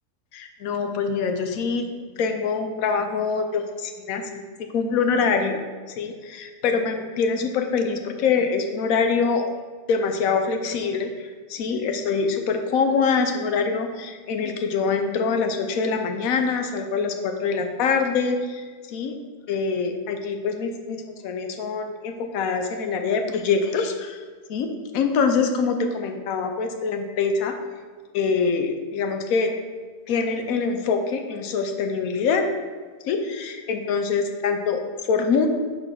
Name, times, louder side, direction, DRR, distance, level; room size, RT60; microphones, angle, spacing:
voice 1, 0.3-1.9 2.2-4.4 4.7-5.6 5.9-9.4 9.9-11.1 11.5-19.2 19.5-24.2 24.5-27.5 28.1-29.5 30.1-32.4 33.1-34.8 35.1-35.5, left 5 dB, 65° left, 6 dB, 1.0 m, -24 dB
5.5 x 4.2 x 5.8 m, 1.5 s
omnidirectional pair, 1.8 m